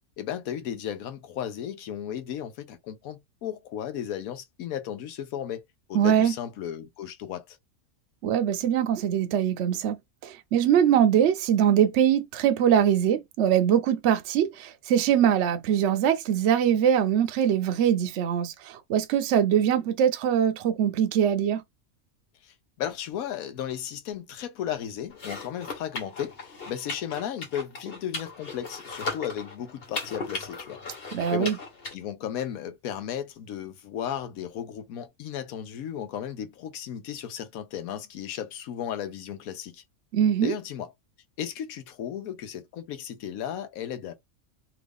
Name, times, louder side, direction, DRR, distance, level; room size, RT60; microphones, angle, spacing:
voice 1, 0.2-5.6 5.9-7.6 22.4-30.8 31.3-31.6 31.9-39.8 40.4-40.9 41.4-44.1, left 9 dB, 85° left, 1.2 m, -35 dB
voice 2, 5.9-6.3 8.2-10.0 10.2-21.6 31.1-31.6 40.1-40.5, right 9 dB, 65° right, 0.8 m, -22 dB
sound 1, 25.1-31.9, left 3 dB, 45° left, 1.2 m, -37 dB
3.0 x 2.5 x 3.4 m
omnidirectional pair, 1.4 m